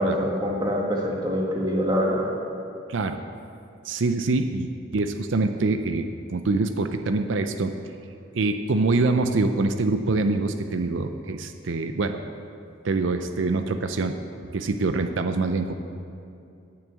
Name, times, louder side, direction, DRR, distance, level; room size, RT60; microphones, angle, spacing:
voice 1, 0.0-2.3, equal, 20° right, -2 dB, 1.4 m, -24 dB
voice 2, 3.8-7.7 8.3-12.2 12.8-14.2 14.5-15.7, right 3 dB, 80° right, 7 dB, 0.5 m, -25 dB
9.1 x 7.1 x 8.0 m, 2.5 s
head